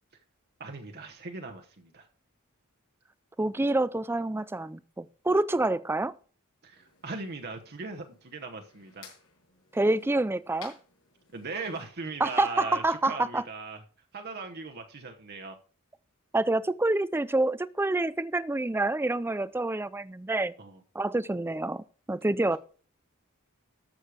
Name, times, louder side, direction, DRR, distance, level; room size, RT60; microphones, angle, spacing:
voice 1, 0.6-2.1 6.6-9.1 11.3-13.8 14.1-15.5 20.6-20.8, right 3 dB, 50° right, 1.0 m, -39 dB
voice 2, 3.4-6.1 9.7-10.8 12.2-13.4 16.3-20.5 20.9-22.6, right 2 dB, 10° right, 0.4 m, -27 dB
sound 1, 6.7-11.9, left 6 dB, 80° left, 5.9 m, -55 dB
13.5 x 6.4 x 4.9 m
head